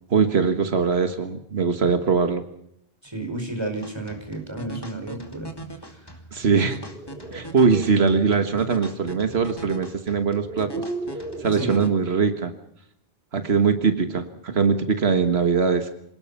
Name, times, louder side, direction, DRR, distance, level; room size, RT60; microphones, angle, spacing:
voice 1, 0.1-2.4 6.3-6.8 7.3-10.7 11.4-12.5 13.3-15.9, right 5 dB, 85° right, 8 dB, 1.7 m, -21 dB
voice 2, 3.0-5.5 11.6-11.9, right 2 dB, 25° right, 4 dB, 5.1 m, -31 dB
sound 1, 3.8-11.9, right 1 dB, 20° left, 2.5 m, -41 dB
sound 2, 6.7-7.9 9.4-9.5 10.2-11.6, right 2 dB, 70° right, 3.1 m, -35 dB
27.5 x 18.5 x 5.6 m, 0.75 s
omnidirectional pair, 1.0 m